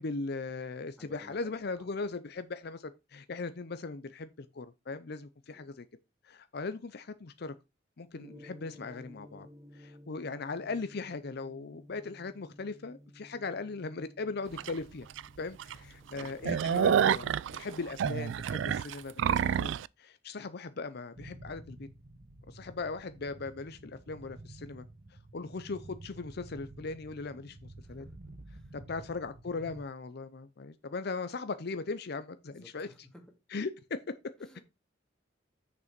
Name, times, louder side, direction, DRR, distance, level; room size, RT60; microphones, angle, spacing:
voice 1, 0.0-5.9 6.2-7.5 8.0-9.5 9.7-15.1 15.4-17.3 17.6-19.1 19.4-19.7 20.0-21.9 22.5-24.9 25.3-28.0 28.7-32.9 33.5-34.6, left 3 dB, 60° left, 0.6 m, -39 dB
voice 2, 1.0-1.9 5.5-5.6 15.8-17.9 25.4-25.5 27.8-28.2 28.4-29.0 32.5-33.3 34.4-34.6, left 1 dB, 5° left, 2.1 m, -57 dB
Gong, 8.1-18.8, equal, 15° right, 1.4 m, -55 dB
sound 1, 14.6-14.7 15.2-15.3 15.6-15.7 16.1-19.9, right 8 dB, 75° right, 0.3 m, -28 dB
sound 2, 21.1-29.8, right 2 dB, 45° right, 1.1 m, -50 dB
6.8 x 5.3 x 5.1 m
head